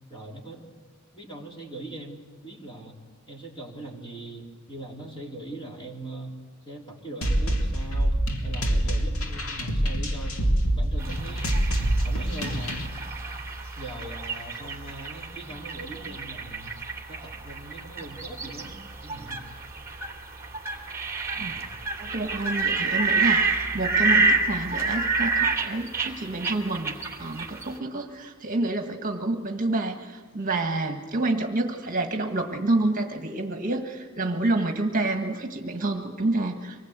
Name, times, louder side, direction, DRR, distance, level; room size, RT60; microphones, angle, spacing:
voice 1, 0.1-0.6 1.1-2.9 3.3-10.4 10.7-11.7 12.0-12.8 13.8-16.8 17.1-18.8 19.0-19.5 21.4-21.7, right 2 dB, 20° left, -1 dB, 3.7 m, -41 dB
sound 1, 7.2-12.9, right 1 dB, 85° left, 2.6 m, -25 dB
sound 2, 11.0-27.8, right 4 dB, 15° right, 2.6 m, -29 dB
voice 2, 22.0-36.8, right 2 dB, 40° right, 4 dB, 1.6 m, -28 dB
25.5 x 20.0 x 8.2 m, 1.5 s
head